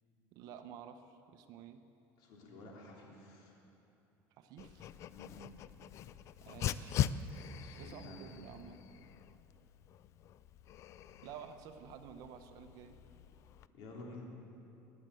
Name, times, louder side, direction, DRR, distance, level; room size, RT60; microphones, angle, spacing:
voice 1, 0.3-1.8 4.4-4.9 6.4-7.1 7.7-8.8 11.2-13.0, right 8 dB, 55° right, 8 dB, 0.9 m, -51 dB
voice 2, 2.2-3.5 5.1-5.4 7.4-8.5 13.7-14.3, left 1 dB, 60° left, -1 dB, 3.4 m, -51 dB
Dog, 4.6-13.7, left 10 dB, 40° left, 0.4 m, -42 dB
21.0 x 8.5 x 7.7 m, 2.8 s
cardioid pair, 155°, 8 cm